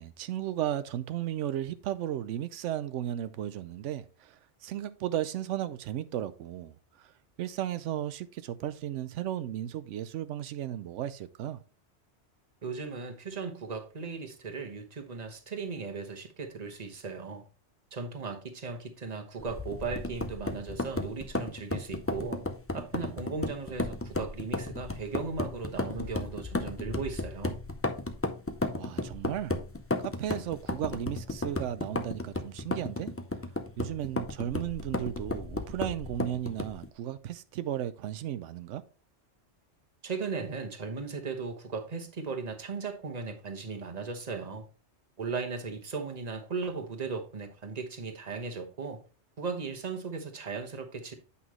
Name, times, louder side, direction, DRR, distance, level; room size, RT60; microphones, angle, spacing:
voice 1, 0.0-7.1 7.4-11.6 28.7-29.5 30.0-33.1 33.8-38.8, right 11 dB, 90° right, 0.9 m, -35 dB
voice 2, 12.6-17.4 17.9-22.4 22.7-27.5 40.0-44.7 45.2-49.0 49.4-51.1, right 4 dB, 35° right, 1.1 m, -37 dB
sound 1, 19.4-36.9, left 2 dB, 20° left, 0.4 m, -34 dB
8.5 x 5.5 x 3.1 m
omnidirectional pair, 1.2 m